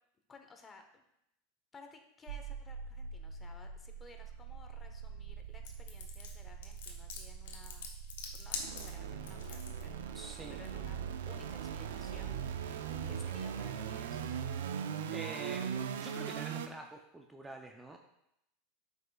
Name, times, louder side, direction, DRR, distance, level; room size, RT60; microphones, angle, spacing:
voice 1, 0.3-1.0 1.7-7.9 8.3-12.7 13.1-14.2, left 4 dB, 20° left, 5 dB, 0.9 m, -57 dB
sound 1, 2.3-16.7, right 7 dB, 85° right, 0.5 m, -41 dB
sound 2, 5.6-9.8, left 6 dB, 80° left, 1.0 m, -43 dB
voice 2, 10.1-10.6 15.1-18.0, right 2 dB, 10° right, 3 dB, 0.5 m, -46 dB
7.5 x 5.5 x 2.3 m, 0.79 s
supercardioid pair, 120°, 0 cm